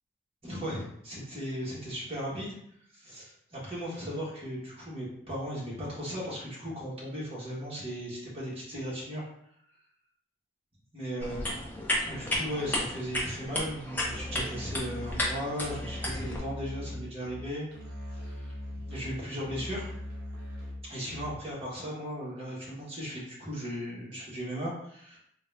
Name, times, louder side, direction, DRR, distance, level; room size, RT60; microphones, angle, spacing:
voice 1, 0.4-2.5 2.9-9.2 10.9-11.7 12.0-17.7 18.2-19.9 20.9-25.2, equal, 30° right, -6 dB, 1.3 m, -37 dB
sound 1, 11.2-16.4, left 1 dB, 10° left, 0.6 m, -33 dB
Musical instrument, 13.9-21.5, left 1 dB, 50° right, 0.9 m, -41 dB
3.8 x 2.4 x 3.3 m, 0.71 s
head